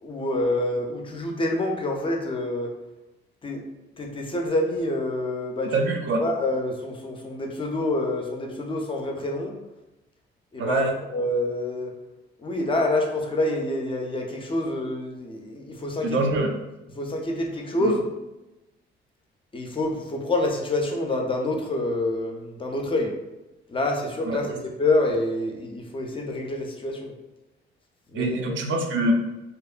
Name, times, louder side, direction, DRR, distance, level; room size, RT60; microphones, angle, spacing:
voice 1, 0.0-2.7 3.4-3.6 4.0-5.8 6.2-9.5 10.5-10.8 11.1-11.9 12.4-16.2 17.0-18.0 19.5-23.1 23.7-27.1 28.1-28.6, left 2 dB, 25° left, 2 dB, 0.4 m, -27 dB
voice 2, 5.6-6.2 10.6-10.9 16.0-16.5 17.8-17.9 24.2-24.6 28.1-29.1, right 2 dB, 70° right, 3 dB, 0.5 m, -25 dB
2.8 x 2.1 x 2.3 m, 0.98 s
cardioid pair, 90°, 20 cm